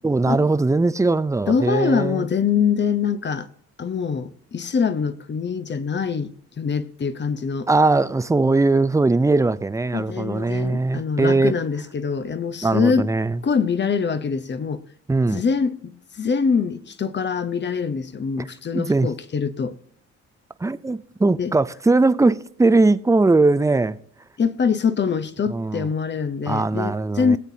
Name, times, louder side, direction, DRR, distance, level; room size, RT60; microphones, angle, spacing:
voice 1, 0.0-2.3 7.7-11.5 12.6-13.4 15.1-15.4 18.7-19.1 20.6-24.0 25.5-25.9 26.5-27.4, right 3 dB, 10° right, 0.5 m, -20 dB
voice 2, 1.5-3.5 3.8-7.7 9.9-13.1 13.4-14.8 15.3-19.8 21.4-21.5 24.4-27.4, left 6 dB, 35° left, 0.9 m, -24 dB
20.0 x 8.1 x 2.8 m
cardioid pair, 90°, 30 cm